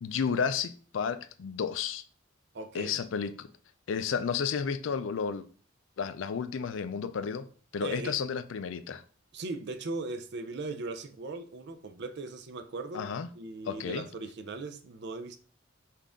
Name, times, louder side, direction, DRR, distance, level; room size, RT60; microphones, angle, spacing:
voice 1, 0.0-2.0 2.7-3.5 3.9-5.5 6.0-7.5 7.7-9.0 12.9-13.3 13.7-14.0, left 6 dB, 75° left, 0.4 m, -32 dB
voice 2, 2.5-3.0 7.8-8.2 9.3-13.1 13.4-15.4, right 3 dB, 60° right, 0.5 m, -38 dB
5.6 x 2.5 x 3.5 m
head